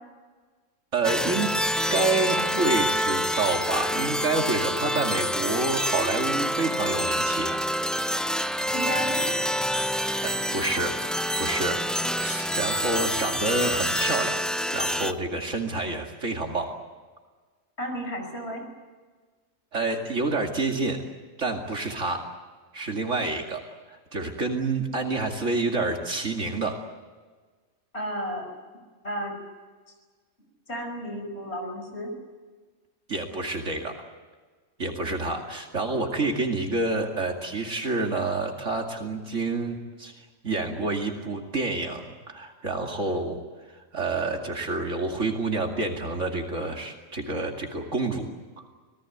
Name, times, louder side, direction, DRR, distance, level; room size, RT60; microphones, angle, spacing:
voice 1, 0.9-1.5 1.9-7.6 10.2-10.9 11.3-11.8 12.2-14.4 14.7-16.8 19.7-21.0 21.4-22.2 22.7-26.8 33.1-33.9 34.8-43.4 43.7-48.3, right 3 dB, 60° right, 2 dB, 2.7 m, -28 dB
sound 1, 1.0-15.1, equal, ahead, 0.4 m, -27 dB
voice 2, 8.7-9.2 17.8-18.6 27.9-28.4 29.0-29.3 30.7-32.1, equal, 50° left, 3 dB, 5.8 m, -32 dB
27.5 x 18.5 x 9.4 m, 1.4 s
omnidirectional pair, 1.4 m